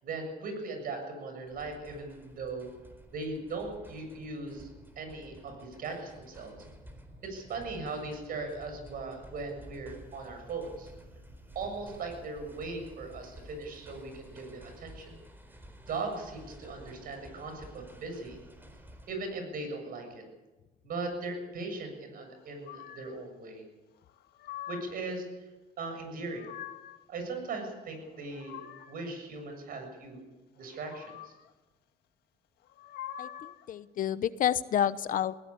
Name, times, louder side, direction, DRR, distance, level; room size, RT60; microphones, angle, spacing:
voice 1, 0.0-2.7 3.1-4.7 5.0-6.5 7.2-10.9 11.5-15.1 15.9-18.4 19.1-20.2 20.8-23.6 24.7-25.5 25.8-26.5 27.1-28.6 28.9-30.2 30.6-31.3, right 3 dB, 60° right, 5 dB, 7.4 m, -39 dB
sound 1, 1.5-19.1, right 1 dB, 10° right, 4.2 m, -52 dB
sound 2, 22.6-23.2 24.1-25.1 26.0-27.0 28.0-29.1 30.6-31.5 32.6-33.7, left 11 dB, 75° left, 1.7 m, -45 dB
voice 2, 33.2-35.3, left 10 dB, 55° left, 15 dB, 0.9 m, -29 dB
20.0 x 17.5 x 8.7 m, 1.1 s
cardioid pair, 110°, 17 cm